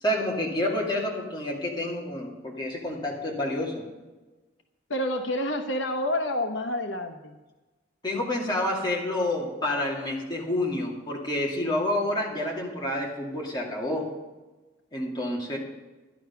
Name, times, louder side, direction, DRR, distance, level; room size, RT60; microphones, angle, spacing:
voice 1, 0.0-3.8 8.0-14.1 14.9-15.6, left 1 dB, 20° left, -2 dB, 2.4 m, -29 dB
voice 2, 4.9-7.3, left 1 dB, 75° left, 6 dB, 1.0 m, -28 dB
11.5 x 11.0 x 5.7 m, 1.2 s
head